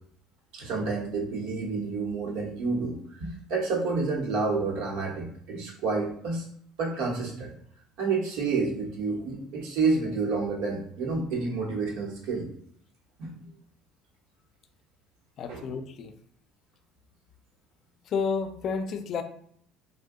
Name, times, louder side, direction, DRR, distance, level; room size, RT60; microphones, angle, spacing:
voice 1, 0.5-6.4 6.8-7.5 8.0-12.5 13.2-13.4 15.5-15.7, right 4 dB, 80° right, -2 dB, 0.9 m, -29 dB
voice 2, 15.4-16.2 18.1-19.2, left 5 dB, 55° left, 8 dB, 0.3 m, -30 dB
2.7 x 2.1 x 3.5 m, 0.63 s
supercardioid pair, 95°, 0 cm